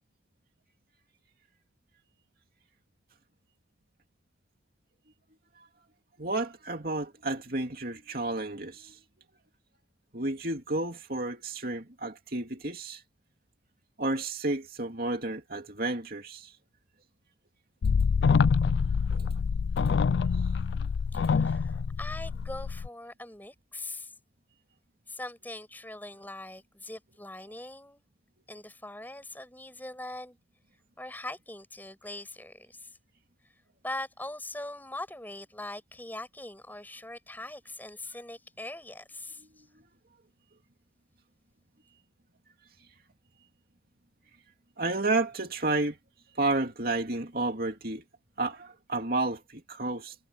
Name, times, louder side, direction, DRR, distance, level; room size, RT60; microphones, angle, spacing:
voice 1, 6.2-9.0 10.1-13.0 14.0-16.5 19.1-19.3 44.8-46.0 46.3-48.0 48.4-50.1, right 2 dB, 50° right, 2.6 m, -31 dB
sound 1, 17.8-22.9, left 5 dB, 60° left, 0.3 m, -26 dB
voice 2, 21.1-24.1 25.1-28.0 28.5-30.4 31.0-32.9 33.8-39.5, left 1 dB, 10° left, 7.2 m, -41 dB
head